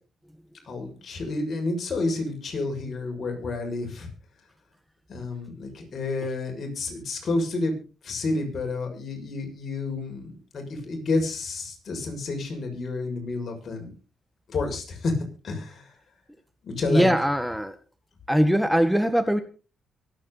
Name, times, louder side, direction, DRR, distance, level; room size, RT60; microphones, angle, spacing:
voice 1, 0.7-4.1 5.1-7.7 8.0-13.9 14.5-15.1 15.4-15.9 16.6-17.1, left 3 dB, 55° left, 2 dB, 6.7 m, -30 dB
voice 2, 16.9-17.8 18.3-19.4, equal, 5° right, 10 dB, 1.7 m, -21 dB
24.0 x 9.0 x 4.1 m, 0.35 s
supercardioid pair, 60°, 0 cm